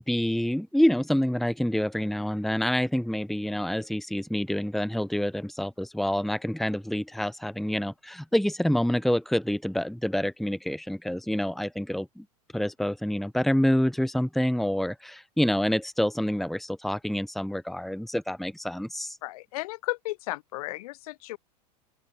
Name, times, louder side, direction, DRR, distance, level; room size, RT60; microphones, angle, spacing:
voice 1, 0.0-12.2 12.5-19.2, equal, ahead, 1.6 m, -27 dB
voice 2, 19.2-21.4, left 19 dB, 60° left, 2.9 m, -34 dB
open air
hypercardioid pair, 95°, 21 cm